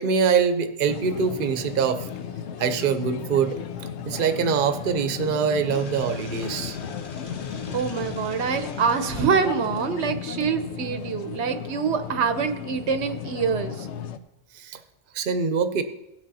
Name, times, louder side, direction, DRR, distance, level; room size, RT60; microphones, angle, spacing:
voice 1, 0.0-2.1 2.6-3.6 4.1-6.8 14.5-14.8 15.1-15.8, right 6 dB, 55° right, 9 dB, 0.9 m, -24 dB
sound 1, 0.9-14.2, left 8 dB, 90° left, 0.9 m, -35 dB
sound 2, 5.7-10.2, left 4 dB, 50° left, 1.0 m, -42 dB
voice 2, 7.7-13.9, right 6 dB, 80° right, 9 dB, 1.0 m, -25 dB
17.0 x 6.3 x 4.1 m, 0.92 s
omnidirectional pair, 1.1 m